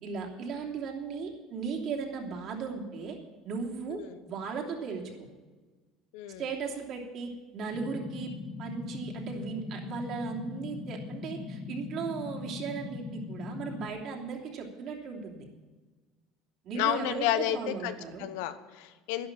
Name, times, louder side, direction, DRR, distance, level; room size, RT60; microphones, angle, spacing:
voice 1, 0.0-3.2 3.4-5.3 6.4-8.3 8.6-15.5 16.6-18.3, right 5 dB, 50° right, -1 dB, 3.0 m, -37 dB
sound 1, 7.7-13.9, left 4 dB, 15° left, 1.6 m, -40 dB
voice 2, 16.8-17.9 18.2-19.3, left 12 dB, 85° left, 11 dB, 1.0 m, -31 dB
11.5 x 11.0 x 7.5 m, 1.3 s
cardioid pair, 135°, 0 cm